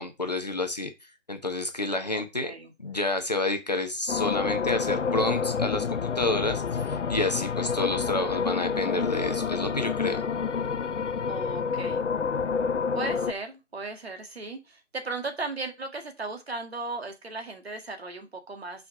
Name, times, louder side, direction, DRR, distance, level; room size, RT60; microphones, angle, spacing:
voice 1, 0.0-2.5 2.8-10.2, left 2 dB, 35° left, 6 dB, 0.8 m, -29 dB
voice 2, 1.9-2.7 11.3-12.0 12.9-18.9, right 3 dB, 55° right, 5 dB, 1.9 m, -36 dB
sound 1, 4.1-13.3, left 6 dB, 70° left, 0.7 m, -28 dB
6.1 x 4.8 x 4.8 m, 0.24 s
figure-of-eight pair, 170°, 37 cm